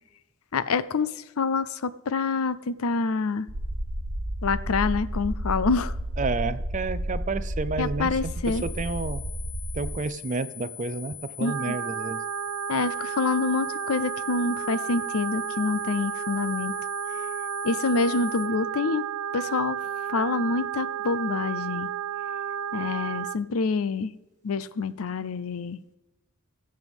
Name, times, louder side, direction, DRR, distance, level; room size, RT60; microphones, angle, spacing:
voice 1, 0.5-3.5 4.4-6.0 7.8-8.6 11.4-11.8 12.7-16.7 17.6-19.0 19.3-21.9 22.7-24.1 24.4-25.8, left 4 dB, 85° left, 16 dB, 0.5 m, -27 dB
sound 1, 3.5-9.9, equal, 55° right, 1.1 m, -31 dB
voice 2, 6.2-9.2 9.7-12.2, right 3 dB, 35° right, 13 dB, 0.5 m, -30 dB
sound 2, 8.4-18.4, left 14 dB, 20° left, 2.9 m, -43 dB
sound 3, 11.4-23.4, right 9 dB, 85° right, 0.5 m, -32 dB
20.5 x 7.7 x 3.6 m, 1.1 s
head